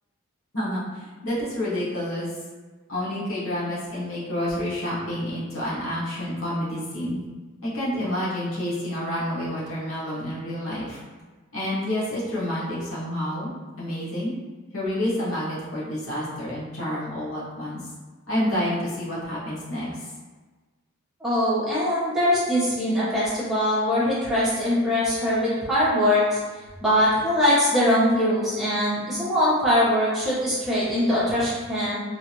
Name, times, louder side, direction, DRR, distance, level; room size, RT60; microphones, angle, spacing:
voice 1, 0.5-2.3 2.9-7.2 7.6-11.0 11.5-14.3 14.7-17.8 18.3-20.1, left 1 dB, 85° left, -7 dB, 1.1 m, -29 dB
voice 2, 21.2-26.4 26.8-32.0, left 1 dB, ahead, -11 dB, 0.9 m, -22 dB
2.9 x 2.4 x 2.9 m, 1.3 s
head